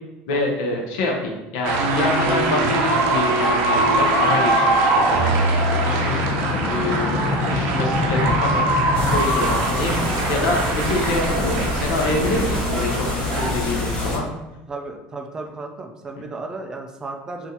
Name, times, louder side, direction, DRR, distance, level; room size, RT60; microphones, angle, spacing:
voice 1, 0.3-5.3 5.8-6.2 6.5-8.5 9.1-13.1 13.3-14.3, left 2 dB, 85° left, 0 dB, 0.7 m, -26 dB
sound 1, 1.6-13.5, right 2 dB, 70° right, 0.5 m, -22 dB
sound 2, 4.4-10.2, left 4 dB, 45° left, 0.5 m, -27 dB
sound 3, 8.9-14.2, left 2 dB, 25° left, 1.1 m, -26 dB
voice 2, 14.7-17.5, right 3 dB, 15° right, 3 dB, 0.3 m, -34 dB
3.6 x 2.5 x 2.8 m, 0.98 s
cardioid pair, 160°, 4 cm